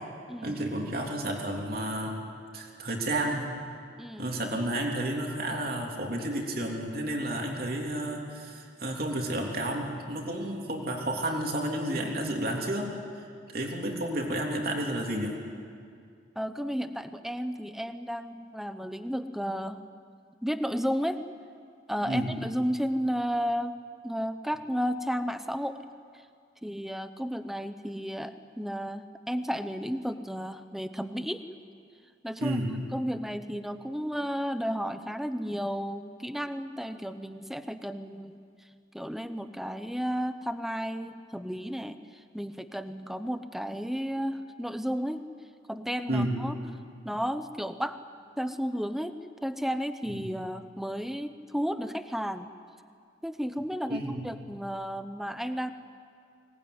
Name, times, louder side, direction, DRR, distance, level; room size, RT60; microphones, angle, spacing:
voice 1, 0.4-2.2 2.5-3.5 4.2-12.9 13.5-15.4 22.0-22.3 32.4-32.8 46.1-46.3 50.1-50.2 53.9-54.3, right 1 dB, 55° right, 0 dB, 3.4 m, -31 dB
voice 2, 4.0-4.3 16.4-19.8 20.4-21.2 21.9-23.8 24.0-25.8 26.6-31.4 32.2-32.6 32.9-38.4 38.9-45.2 45.7-46.6 47.0-48.0 48.4-52.5 53.2-55.7, equal, ahead, 10 dB, 0.8 m, -33 dB
23.5 x 19.0 x 9.7 m, 2.3 s
head